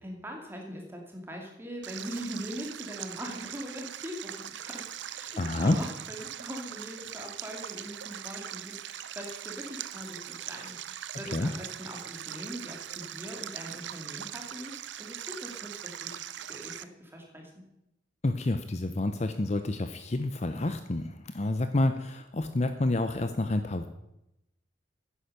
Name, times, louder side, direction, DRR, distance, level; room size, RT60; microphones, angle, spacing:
voice 1, 0.0-4.9 5.1-16.2 16.5-17.6, equal, 10° right, 1 dB, 2.6 m, -41 dB
Stream, 1.8-16.8, right 11 dB, 65° right, 0.5 m, -41 dB
voice 2, 5.4-5.8 11.3-11.5 18.2-23.9, left 2 dB, 35° left, 9 dB, 0.6 m, -29 dB
10.0 x 10.0 x 6.7 m, 0.87 s
head